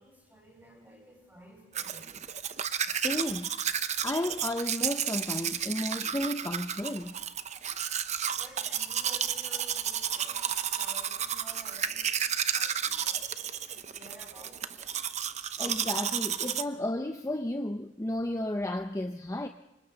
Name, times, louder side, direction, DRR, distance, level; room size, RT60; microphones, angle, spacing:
voice 1, 0.0-2.1 8.4-10.5 10.7-12.1 12.5-13.3 13.7-15.0, equal, 10° right, 0 dB, 6.5 m, -53 dB
Domestic sounds home sounds, 1.7-16.6, right 8 dB, 40° right, 0.8 m, -32 dB
voice 2, 2.9-3.7 4.0-7.2 15.6-19.5, left 1 dB, 15° left, 6 dB, 0.7 m, -33 dB
27.5 x 25.0 x 4.0 m, 0.99 s
head